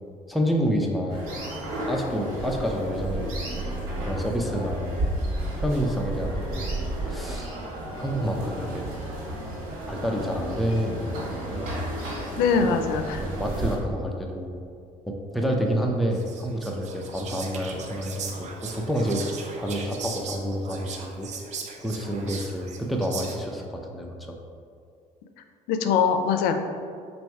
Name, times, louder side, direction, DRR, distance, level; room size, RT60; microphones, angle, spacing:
voice 1, 0.3-1.3 1.9-4.9 5.6-7.5 8.0-8.9 9.9-11.7 12.6-12.8 13.2-14.6 15.1-19.2 19.6-21.3 21.8-24.4, equal, ahead, 0 dB, 0.5 m, -29 dB
sound 1, 1.1-13.8, right 1 dB, 90° right, 1.5 m, -32 dB
voice 2, 12.4-13.2 25.7-26.5, left 6 dB, 90° left, 7 dB, 0.4 m, -22 dB
Whispering, 16.1-23.6, right 5 dB, 50° right, 0.6 m, -38 dB
4.5 x 2.6 x 4.5 m, 2.3 s
cardioid pair, 110°, 15 cm